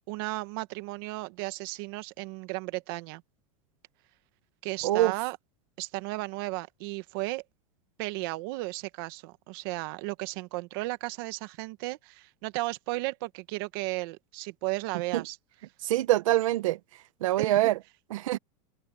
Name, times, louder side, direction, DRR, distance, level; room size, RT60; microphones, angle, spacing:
voice 1, 0.1-3.2 4.6-5.4 5.8-7.4 8.0-15.4 17.4-17.7, right 22 dB, 45° right, 1.2 m, -34 dB
voice 2, 4.8-5.1 15.1-15.2 15.8-16.8 17.2-17.8 18.1-18.4, right 14 dB, 75° right, 1.1 m, -24 dB
open air
supercardioid pair, 175°, 17 cm